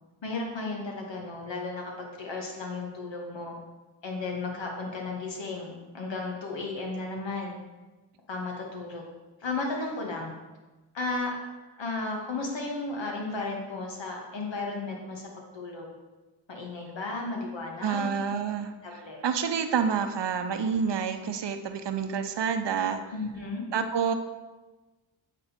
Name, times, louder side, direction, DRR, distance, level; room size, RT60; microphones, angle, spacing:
voice 1, 0.2-3.5 4.0-7.6 8.3-9.0 9.4-10.3 10.9-11.4 11.8-15.2 15.5-15.9 16.5-18.4 18.8-19.2 23.1-23.7, left 3 dB, 65° left, 0 dB, 2.0 m, -34 dB
voice 2, 17.8-18.7 19.2-23.0 23.7-24.1, right 6 dB, 60° right, 8 dB, 0.8 m, -28 dB
8.5 x 4.3 x 5.1 m, 1.2 s
cardioid pair, 50°, 47 cm